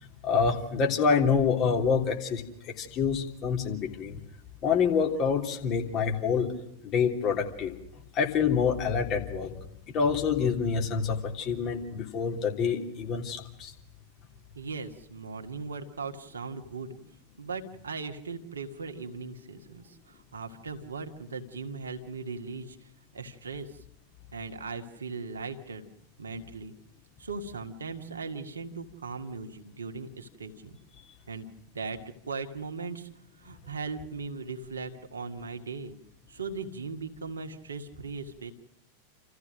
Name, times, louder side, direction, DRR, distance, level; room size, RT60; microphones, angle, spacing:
voice 1, 0.2-4.2 4.6-6.5 6.8-7.8 8.1-9.5 9.9-13.7, left 6 dB, 35° left, 2 dB, 3.2 m, -27 dB
voice 2, 14.6-17.0 17.4-23.8 24.3-25.9 26.2-26.7 27.2-30.8 31.3-31.5 31.7-32.0 32.3-33.1 33.4-36.0 36.3-38.5, right 4 dB, 70° right, 5 dB, 1.9 m, -38 dB
29.0 x 14.5 x 6.4 m, 0.82 s
figure-of-eight pair, 90°, 0 cm